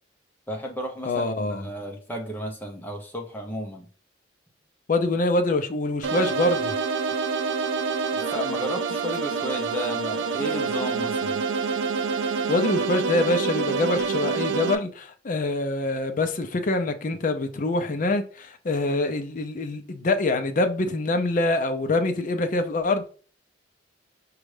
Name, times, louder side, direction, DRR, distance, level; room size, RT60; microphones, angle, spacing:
voice 1, 0.5-3.9 8.1-11.4, equal, 10° left, 0.7 m, -33 dB
voice 2, 1.1-1.7 4.9-6.7 12.5-23.1, left 2 dB, 45° left, 0.4 m, -25 dB
sound 1, 6.0-14.7, right 5 dB, 70° right, 0.4 m, -27 dB
5.1 x 2.3 x 3.2 m
head